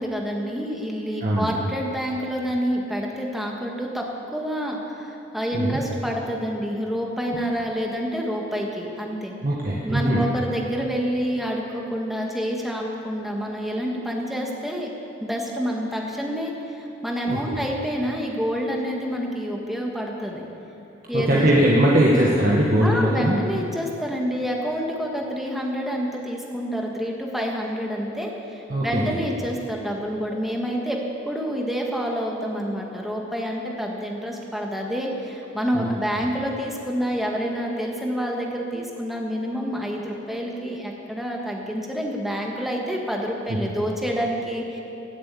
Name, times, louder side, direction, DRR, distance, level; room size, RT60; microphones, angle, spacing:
voice 1, 0.0-4.0 4.3-9.3 9.8-14.9 15.2-20.5 21.1-21.5 21.8-22.1 22.8-31.0 31.2-44.8, equal, ahead, -1 dB, 1.5 m, -28 dB
voice 2, 9.4-10.2 17.3-17.6 21.1-23.4 28.7-29.2 35.7-35.9 43.5-43.6, right 1 dB, 45° right, -4 dB, 1.4 m, -20 dB
17.0 x 7.7 x 8.3 m, 2.9 s
head